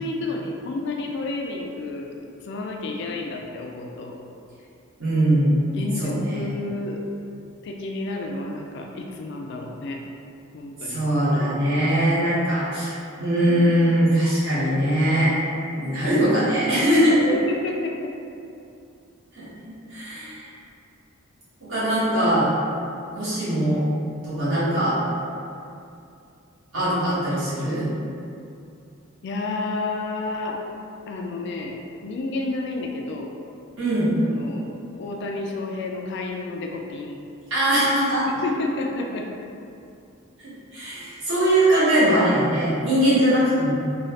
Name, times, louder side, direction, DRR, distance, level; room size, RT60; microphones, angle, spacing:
voice 1, 0.0-2.2 2.4-4.2 5.7-7.0 7.6-10.0 10.5-11.1 17.3-18.2 29.2-30.6 31.1-33.3 34.2-34.7 35.0-37.2 38.4-39.3, left 2 dB, 55° left, 1 dB, 0.3 m, -30 dB
voice 2, 5.0-5.7 6.0-6.5 10.8-15.3 15.7-17.3 19.3-20.4 21.6-22.5 23.1-23.8 24.2-25.0 26.7-27.9 33.8-34.1 37.5-38.4 40.4-43.7, right 1 dB, 70° right, -13 dB, 1.4 m, -21 dB
3.1 x 2.3 x 2.8 m, 2.6 s
head